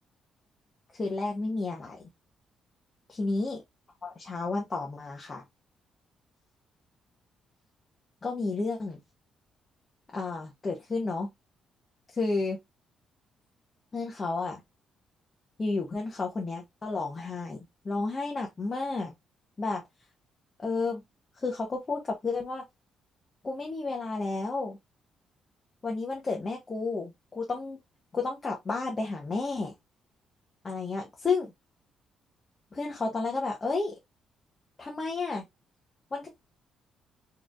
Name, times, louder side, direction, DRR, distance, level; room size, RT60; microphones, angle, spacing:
voice 1, 0.9-2.0 3.1-3.6 4.0-5.4 8.2-9.0 10.1-11.3 12.1-12.6 13.9-14.6 15.6-19.1 19.6-19.8 20.6-21.0 21.4-22.6 23.4-24.8 25.8-27.8 28.1-29.7 30.6-31.5 32.7-33.9 34.8-35.4 36.1-36.3, left 3 dB, 30° left, 1.0 m, -31 dB
4.2 x 3.2 x 2.5 m
cardioid pair, 90°, 0 cm